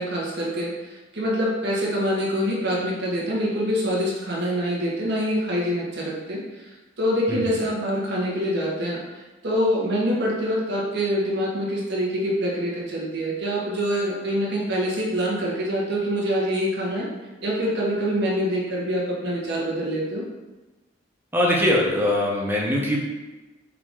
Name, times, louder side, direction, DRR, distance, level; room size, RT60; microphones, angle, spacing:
voice 1, 0.0-6.6 7.0-9.0 9.4-17.1 17.4-20.3, equal, 60° right, -4 dB, 1.0 m, -25 dB
voice 2, 21.3-23.0, left 1 dB, 10° right, -3 dB, 0.7 m, -21 dB
4.7 x 2.5 x 3.6 m, 1.2 s
head